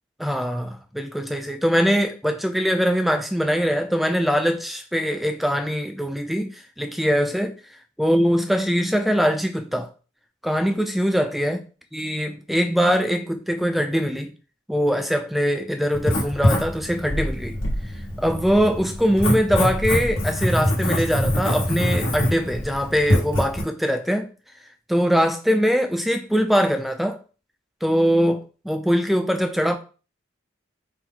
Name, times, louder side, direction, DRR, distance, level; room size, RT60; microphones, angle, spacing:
voice 1, 0.2-7.5 8.0-9.9 10.4-11.6 11.9-14.3 14.7-17.6 18.2-24.3 24.9-27.2 27.8-29.8, equal, ahead, 0.3 m, -22 dB
Writing, 15.9-23.6, left 1 dB, 90° left, 1.2 m, -24 dB
4.4 x 2.1 x 3.8 m
head